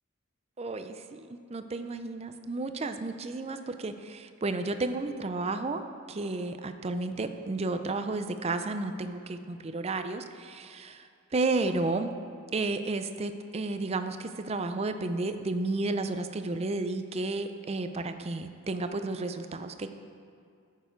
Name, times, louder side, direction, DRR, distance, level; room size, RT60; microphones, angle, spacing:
voice 1, 0.6-5.8 6.1-12.1 12.5-20.0, right 3 dB, 30° right, 9 dB, 0.5 m, -32 dB
14.0 x 6.8 x 4.5 m, 2.4 s
head